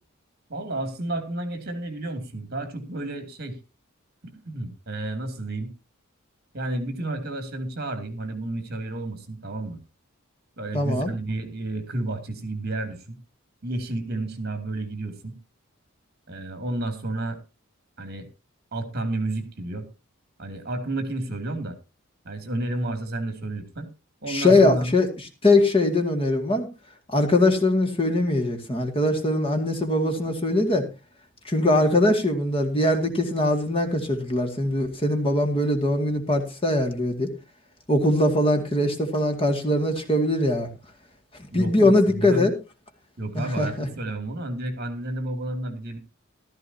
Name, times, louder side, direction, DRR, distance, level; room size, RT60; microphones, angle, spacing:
voice 1, 0.5-3.6 4.3-5.7 6.5-9.8 10.6-13.2 13.6-15.4 16.3-17.4 18.0-18.3 18.7-19.9 20.4-21.8 22.2-23.9 24.2-25.0 41.5-42.5 43.2-46.0, right 2 dB, 50° right, 8 dB, 2.7 m, -31 dB
voice 2, 10.7-11.1 24.3-25.1 25.4-26.7 27.1-30.9 31.4-37.3 37.9-40.7 41.5-42.5 43.3-43.9, left 1 dB, 25° left, 5 dB, 2.2 m, -21 dB
15.0 x 13.5 x 2.8 m, 0.29 s
head